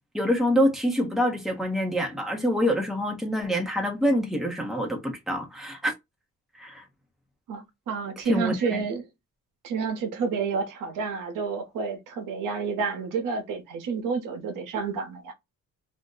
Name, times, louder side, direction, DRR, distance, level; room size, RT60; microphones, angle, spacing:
voice 1, 0.1-5.9 6.6-6.8 8.3-8.8, equal, ahead, 0.7 m, -26 dB
voice 2, 7.5-9.1 9.6-15.3, right 5 dB, 80° right, 0.9 m, -30 dB
2.6 x 2.1 x 3.7 m
cardioid pair, 135°, 32 cm